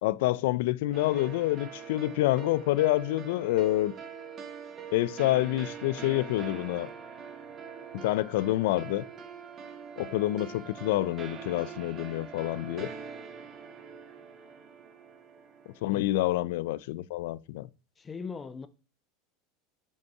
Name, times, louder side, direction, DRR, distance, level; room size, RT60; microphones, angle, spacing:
voice 1, 0.0-3.9 4.9-6.9 7.9-9.0 10.0-12.9 15.8-17.7, left 16 dB, 75° left, 0.4 m, -27 dB
sound 1, 0.9-16.3, right 6 dB, 30° right, 1.2 m, -44 dB
voice 2, 18.0-18.7, left 5 dB, 20° left, 0.6 m, -39 dB
5.3 x 5.3 x 4.8 m
supercardioid pair, 135°, 0 cm